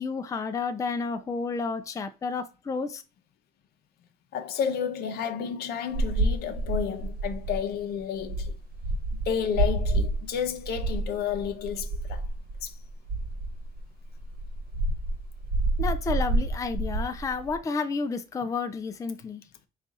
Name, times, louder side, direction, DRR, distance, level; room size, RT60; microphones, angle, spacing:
voice 1, 0.0-3.0 15.8-19.4, left 4 dB, 20° left, 0.4 m, -31 dB
voice 2, 4.3-8.5 9.1-12.2 12.6-12.8, left 7 dB, 70° left, 0.7 m, -31 dB
sound 1, 5.9-13.9 14.2-17.6, right 2 dB, 65° right, 1.2 m, -29 dB
4.2 x 2.4 x 3.9 m
cardioid pair, 110°, 17 cm